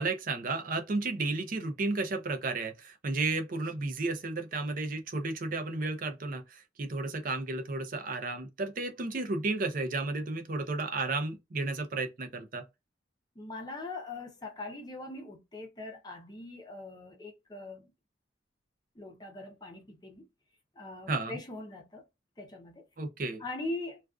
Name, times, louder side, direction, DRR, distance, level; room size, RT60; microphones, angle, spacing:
voice 1, 0.0-12.6 21.1-21.4 23.0-23.4, right 3 dB, 45° right, 0.4 m, -33 dB
voice 2, 13.4-17.9 19.0-20.3 20.8-22.0 22.4-22.8 23.4-24.0, left 2 dB, 20° left, 0.5 m, -41 dB
2.4 x 2.3 x 2.3 m
head